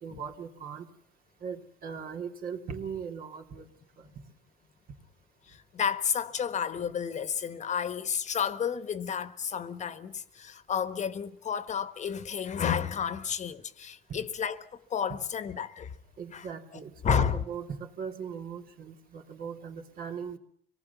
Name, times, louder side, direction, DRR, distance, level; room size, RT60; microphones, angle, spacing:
voice 1, 0.0-0.9 1.4-3.6 4.0-4.1 14.1-14.2 16.2-20.4, right 6 dB, 60° right, 3.2 m, -39 dB
voice 2, 5.5-15.9 16.3-16.5 17.0-17.4, left 7 dB, 45° left, 1.3 m, -31 dB
25.0 x 18.5 x 7.1 m
cardioid pair, 110°, 17 cm